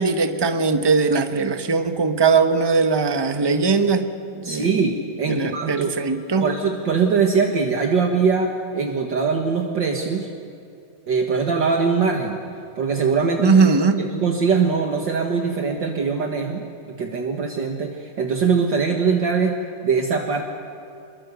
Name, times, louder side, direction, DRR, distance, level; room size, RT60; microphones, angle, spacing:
voice 1, 0.0-4.1 4.3-4.7 5.3-6.5 13.4-14.0, right 4 dB, 15° right, 8 dB, 0.9 m, -19 dB
voice 2, 4.4-5.9 6.4-10.3 11.1-12.4 12.8-13.5 14.0-16.6 17.0-20.4, right 5 dB, 60° right, 2 dB, 2.2 m, -22 dB
25.0 x 22.5 x 8.3 m, 2.6 s
omnidirectional pair, 2.3 m